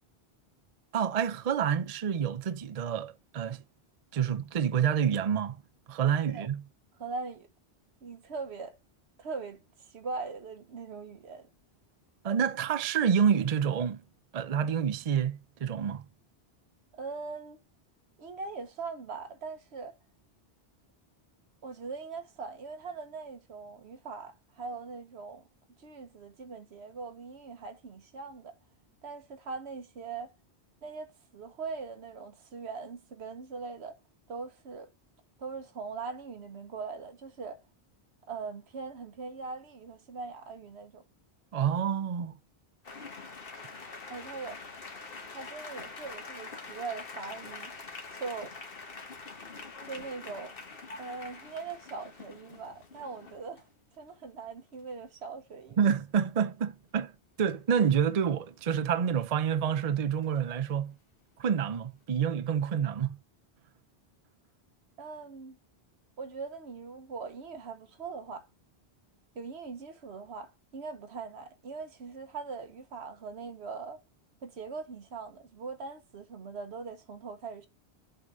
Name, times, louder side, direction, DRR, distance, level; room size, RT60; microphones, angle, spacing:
voice 1, 0.9-3.6 4.1-5.6 5.9-6.6 12.2-14.0 14.3-16.0 41.5-42.3 55.8-57.1 57.4-60.9 61.4-63.2, right 8 dB, 45° right, 0.5 m, -28 dB
voice 2, 7.0-7.5 8.0-8.8 9.2-11.5 16.9-17.6 18.2-19.9 21.6-25.4 25.8-28.5 29.0-30.3 30.8-34.0 34.3-34.9 35.4-37.6 38.3-41.0 44.1-44.6 45.3-47.8 48.1-48.5 49.8-50.6 51.0-53.6 54.0-55.8 65.0-65.6 66.2-68.5 69.3-74.0 74.4-77.7, right 4 dB, 80° right, 1.2 m, -41 dB
sound 1, 42.8-53.6 55.5-55.6 55.9-56.2 60.2-60.5, left 4 dB, 60° left, 1.4 m, -45 dB
7.6 x 3.9 x 5.3 m
omnidirectional pair, 1.1 m